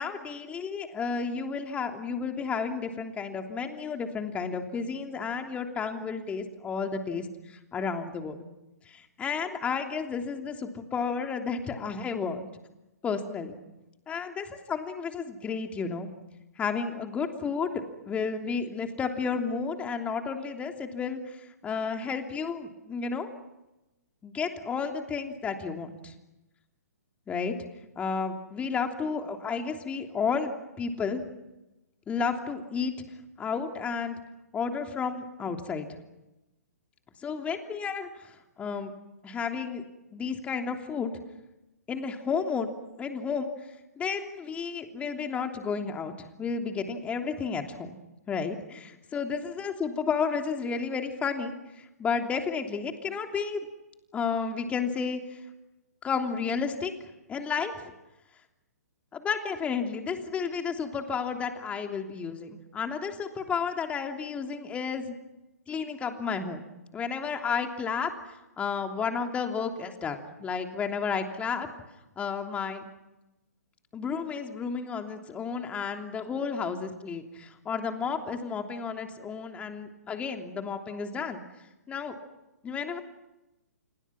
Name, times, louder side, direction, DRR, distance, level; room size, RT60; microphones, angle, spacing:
voice 1, 0.0-8.4 8.9-12.5 13.0-13.6 14.1-16.1 16.6-23.3 24.2-26.1 27.3-27.5 28.0-30.5 30.8-31.2 32.1-32.9 33.4-34.2 34.5-35.9 37.2-38.9 39.2-39.8 40.1-41.1 41.9-42.7 43.0-43.5 44.0-47.9 48.3-53.7 54.1-55.4 56.0-56.9 57.3-57.7 59.1-65.1 65.7-66.7 66.9-71.7 72.2-72.8 73.9-81.4 81.9-82.1 82.6-83.0, left 5 dB, 15° left, 5 dB, 3.1 m, -32 dB
29.5 x 29.0 x 6.1 m, 0.99 s
figure-of-eight pair, 125°, 9 cm